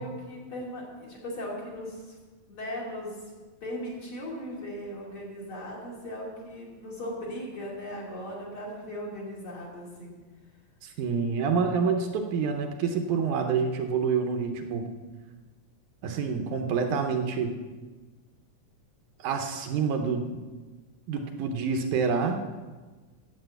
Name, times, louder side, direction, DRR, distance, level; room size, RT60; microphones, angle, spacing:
voice 1, 0.0-2.2 2.5-3.2 3.6-10.2, equal, 40° left, -4 dB, 3.4 m, -38 dB
voice 2, 10.8-14.9 16.0-17.5 19.2-20.4 21.1-22.5, right 5 dB, 75° right, 4 dB, 2.3 m, -27 dB
9.8 x 8.5 x 7.9 m, 1.3 s
omnidirectional pair, 3.8 m